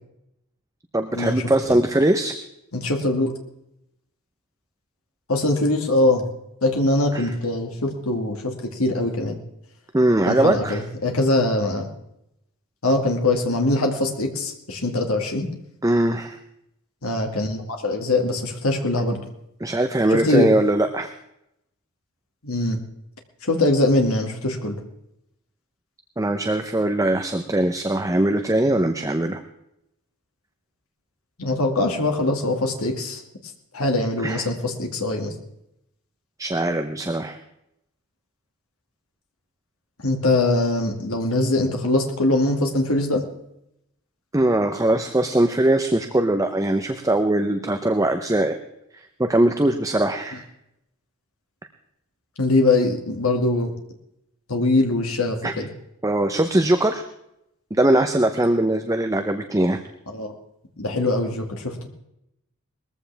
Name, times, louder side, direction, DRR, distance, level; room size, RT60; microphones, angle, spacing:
voice 1, 0.9-2.3 7.1-7.3 9.9-10.8 15.8-16.4 19.6-21.1 26.2-29.4 34.2-34.4 36.4-37.4 44.3-48.6 49.2-50.4 55.4-55.5 56.0-57.0 57.7-59.8, right 1 dB, 15° right, 7 dB, 0.8 m, -21 dB
voice 2, 2.7-3.3 5.3-6.2 6.6-9.4 10.3-11.9 12.8-15.5 17.0-19.2 20.1-20.5 22.4-22.8 23.4-24.8 31.4-33.2 33.7-35.3 40.0-43.2 52.4-53.7 54.5-55.7 60.1-60.3 60.8-61.9, left 2 dB, 70° left, 3 dB, 2.2 m, -22 dB
20.5 x 14.5 x 3.5 m, 0.82 s
head